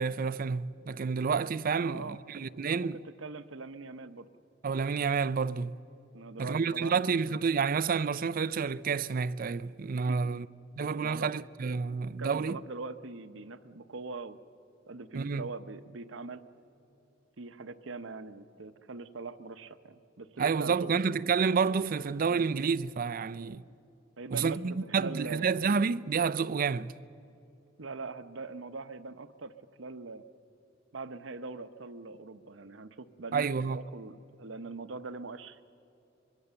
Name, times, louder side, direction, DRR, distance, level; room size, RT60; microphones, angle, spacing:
voice 1, 0.0-3.0 4.6-5.8 6.4-10.5 10.8-12.6 15.1-15.5 20.4-23.6 24.3-26.9 33.3-33.8, right 5 dB, 50° right, 0.4 m, -29 dB
voice 2, 1.8-2.2 2.7-4.3 6.1-6.9 10.1-10.5 11.0-11.3 12.2-14.4 14.9-16.4 17.4-20.9 23.4-23.6 24.2-24.6 25.0-25.5 27.8-29.5 29.8-30.2 30.9-35.6, right 3 dB, 85° right, 0.8 m, -42 dB
24.0 x 22.0 x 6.9 m
head